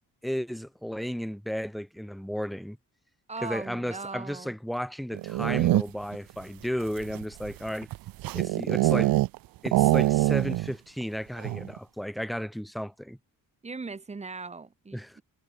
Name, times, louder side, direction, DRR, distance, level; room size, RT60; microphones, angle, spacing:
voice 1, 0.2-2.8 3.4-7.9 8.3-9.1 9.6-13.2 14.9-15.2, equal, ahead, 0.8 m, -33 dB
voice 2, 3.3-4.5 13.6-15.2, right 4 dB, 20° right, 2.3 m, -39 dB
sound 1, 5.1-6.2 6.8-9.4 9.7-10.7 11.0-11.1 11.4-11.8, right 17 dB, 80° right, 0.6 m, -24 dB
wide cardioid pair, 175°, 35 cm